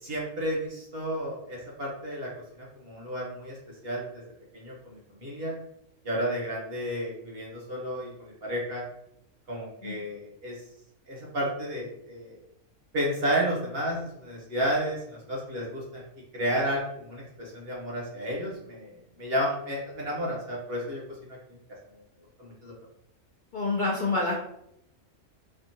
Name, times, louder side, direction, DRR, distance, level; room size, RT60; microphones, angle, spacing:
voice 1, 0.0-2.3 2.6-3.6 3.8-4.2 4.5-5.5 6.0-8.8 9.5-10.5 11.1-12.4 12.9-16.0 16.3-18.9 19.2-21.4 22.4-22.7, equal, 50° right, -3 dB, 1.0 m, -32 dB
voice 2, 23.5-24.3, left 3 dB, 55° left, -5 dB, 0.5 m, -27 dB
3.5 x 2.3 x 2.7 m, 0.77 s
omnidirectional pair, 1.5 m